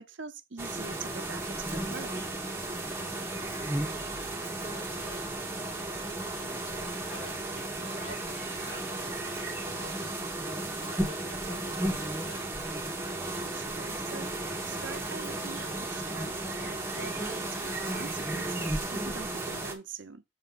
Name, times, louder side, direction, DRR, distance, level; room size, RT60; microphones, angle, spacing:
voice 1, 0.0-2.2 13.4-20.2, right 4 dB, 75° right, 0.8 m, -44 dB
sound 1, 0.6-19.7, right 2 dB, 10° right, 1.7 m, -34 dB
voice 2, 3.2-5.7 6.0-12.4, left 3 dB, 75° left, 3.0 m, -50 dB
7.1 x 3.5 x 5.7 m
head